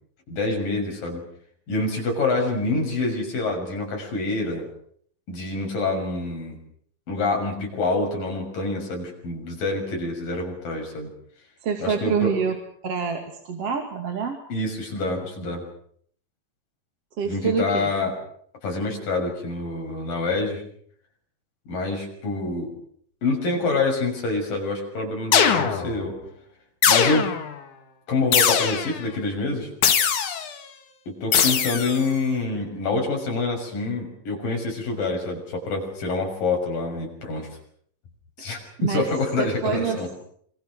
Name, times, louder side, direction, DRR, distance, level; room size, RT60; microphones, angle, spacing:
voice 1, 0.3-1.2 1.7-4.6 5.3-6.6 7.1-11.1 11.8-12.3 14.5-15.6 17.2-18.1 18.6-20.6 21.7-22.7 23.2-26.2 26.9-27.3 28.1-29.7 31.1-37.5 38.4-40.2, left 3 dB, 90° left, 1 dB, 8.2 m, -26 dB
voice 2, 11.6-12.6 12.8-14.4 17.2-17.9 38.8-39.1 39.4-40.0, right 6 dB, 50° right, 4 dB, 3.3 m, -26 dB
sound 1, 25.3-26.0 26.8-27.5 28.3-29.0 29.8-30.5 31.3-32.0, left 7 dB, 65° left, 3.4 m, -21 dB
27.0 x 25.5 x 6.4 m, 0.62 s
omnidirectional pair, 3.8 m